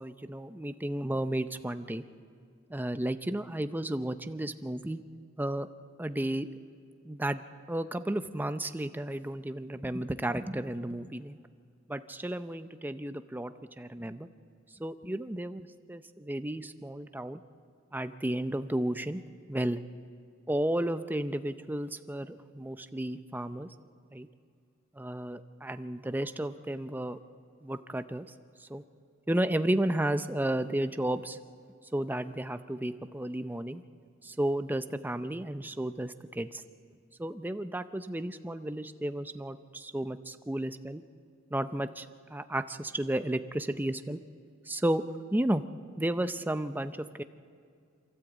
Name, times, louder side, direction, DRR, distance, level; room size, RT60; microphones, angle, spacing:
voice 1, 0.0-2.0 2.7-5.0 5.4-5.7 6.0-6.5 7.0-7.4 7.7-11.4 11.9-14.3 14.8-17.4 17.9-19.2 19.5-19.8 20.5-23.7 24.1-24.3 25.0-27.2 27.6-28.3 28.7-28.8 29.3-31.4 31.9-33.8 34.2-36.6 37.2-41.0 41.5-44.2 44.7-45.0 45.3-45.6 46.0-47.2, right 1 dB, 10° right, 10 dB, 0.6 m, -33 dB
27.5 x 13.0 x 8.1 m, 2.2 s
head